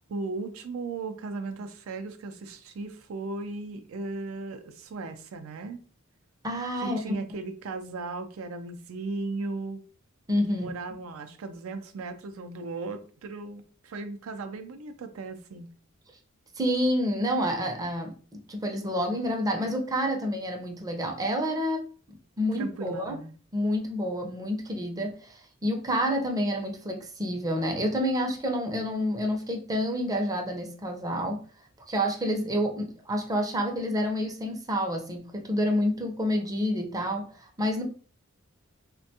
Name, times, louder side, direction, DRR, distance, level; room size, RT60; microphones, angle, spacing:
voice 1, 0.1-5.8 6.8-9.8 10.5-15.7 22.5-23.4, right 3 dB, 75° right, 0.4 m, -36 dB
voice 2, 6.4-7.0 10.3-10.7 16.6-21.9 22.4-23.2 23.5-31.4 31.9-37.8, equal, 20° right, 0.5 m, -28 dB
3.3 x 2.2 x 2.7 m
head